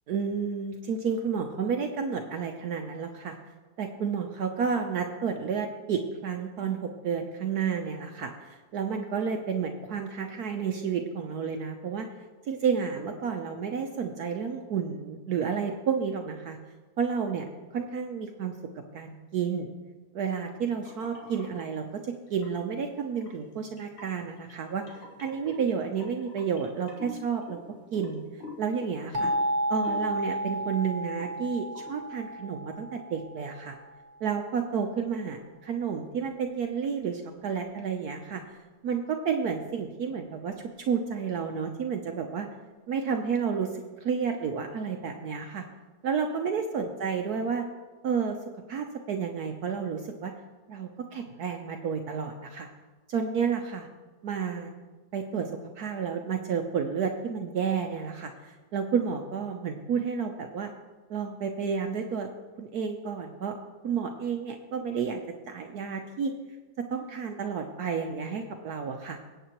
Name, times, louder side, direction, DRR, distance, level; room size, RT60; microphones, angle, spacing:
voice 1, 0.1-3.4 3.8-12.1 12.5-16.6 17.0-17.5 17.7-18.5 18.9-19.7 20.1-27.6 27.9-28.2 28.6-29.3 29.7-33.8 34.2-38.4 38.8-40.6 40.9-42.5 42.9-43.7 44.0-45.6 46.0-47.7 48.0-48.4 48.7-50.3 50.7-52.7 53.1-53.9 54.2-54.7 55.1-55.5 55.8-60.7 61.1-62.3 62.6-63.5 63.8-65.2 65.5-66.3 66.9-69.2, right 6 dB, 65° right, 4 dB, 1.1 m, -31 dB
sound 1, 20.9-21.7 22.3-22.7 23.2-30.7 31.0-31.4 31.8-32.0, left 2 dB, 90° left, 2.3 m, -47 dB
sound 2, 29.1-33.8, right 1 dB, 35° right, 0.7 m, -32 dB
20.0 x 8.3 x 3.0 m, 1.3 s
omnidirectional pair, 2.0 m